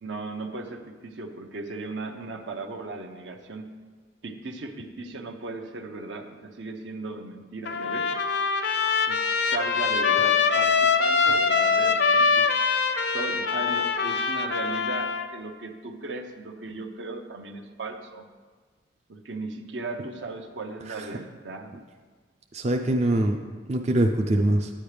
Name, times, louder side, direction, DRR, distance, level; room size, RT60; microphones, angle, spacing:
voice 1, 0.0-3.7 4.2-8.1 9.1-9.2 9.5-12.5 13.1-18.3 19.1-21.7, right 3 dB, 75° right, 5 dB, 0.8 m, -36 dB
Trumpet, 7.6-15.3, left 5 dB, 65° left, 0.6 m, -23 dB
voice 2, 22.5-23.4 23.7-24.7, right 1 dB, 35° right, 3 dB, 0.4 m, -23 dB
9.4 x 8.7 x 3.3 m, 1.5 s
head